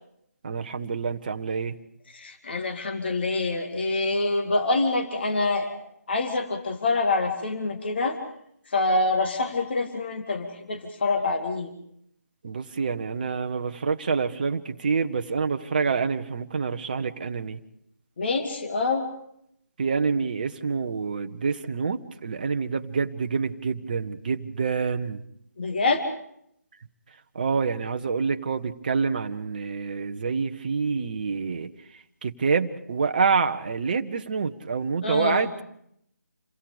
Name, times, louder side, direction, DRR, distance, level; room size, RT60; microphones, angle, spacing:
voice 1, 0.4-1.8 12.4-17.6 19.8-25.2 27.3-31.7 32.2-35.6, right 5 dB, 30° right, 7 dB, 1.0 m, -27 dB
voice 2, 2.1-8.2 8.7-11.7 18.2-19.1 25.6-26.0 35.0-35.5, left 3 dB, 40° left, 6 dB, 2.2 m, -26 dB
28.0 x 23.0 x 5.1 m, 0.73 s
figure-of-eight pair, 155°, 9 cm